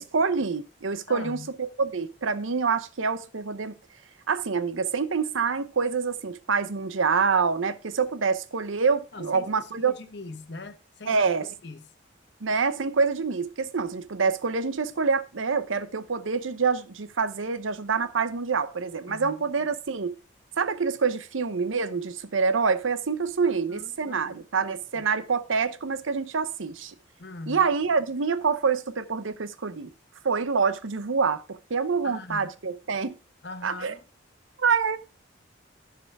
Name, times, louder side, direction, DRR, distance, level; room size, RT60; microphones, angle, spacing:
voice 1, 0.0-3.7 4.3-9.9 11.1-11.5 12.4-20.1 20.6-26.9 27.5-29.9 30.2-33.2 33.6-33.9 34.6-35.0, right 5 dB, 85° right, 0.8 m, -26 dB
voice 2, 1.1-1.5 9.1-11.9 19.1-19.4 23.5-24.4 24.9-25.0 27.2-27.6 32.0-32.5 33.4-34.0, left 3 dB, 60° left, 1.1 m, -41 dB
14.5 x 4.9 x 4.7 m
head